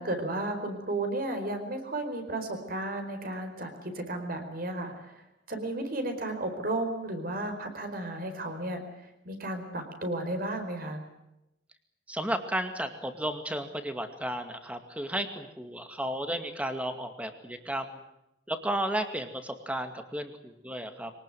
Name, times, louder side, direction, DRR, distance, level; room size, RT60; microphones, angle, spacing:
voice 1, 0.0-5.2 5.5-8.8 9.2-11.0, right 1 dB, 50° right, 6 dB, 4.7 m, -33 dB
voice 2, 12.1-17.9 18.5-21.1, right 1 dB, 5° right, 7 dB, 2.3 m, -33 dB
24.0 x 19.0 x 9.3 m, 0.87 s
head